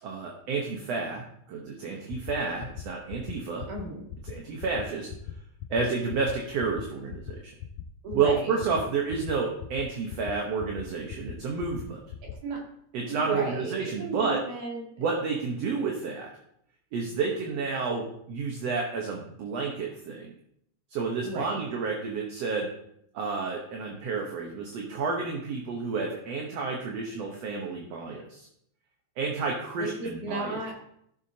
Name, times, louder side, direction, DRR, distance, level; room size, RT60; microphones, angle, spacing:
voice 1, 0.0-3.7 4.2-5.1 5.7-7.5 8.1-12.0 12.9-14.4 15.0-16.3 16.9-20.3 20.9-22.7 23.1-28.5 29.2-30.6, right 4 dB, 65° right, 0 dB, 2.2 m, -30 dB
sound 1, 2.1-2.3 2.6-2.8 3.1-3.3 3.6-3.8 4.1-4.3 4.6-4.8 5.1-5.3 5.6-5.8 6.1-6.3 6.6-6.8 7.1-7.3 7.6-7.8 8.1-8.3 8.6-8.8 9.1-9.3 9.6-9.8 10.1-10.3 10.6-10.8 11.1-11.3 11.6-11.8 12.1-12.3, left 13 dB, 80° left, 2.0 m, -38 dB
voice 2, 3.7-4.0 8.0-8.6 12.4-12.6 13.1-14.8 21.2-21.6 29.8-30.8, right 2 dB, 85° right, -2 dB, 3.9 m, -35 dB
16.0 x 7.1 x 2.8 m, 0.72 s
omnidirectional pair, 3.3 m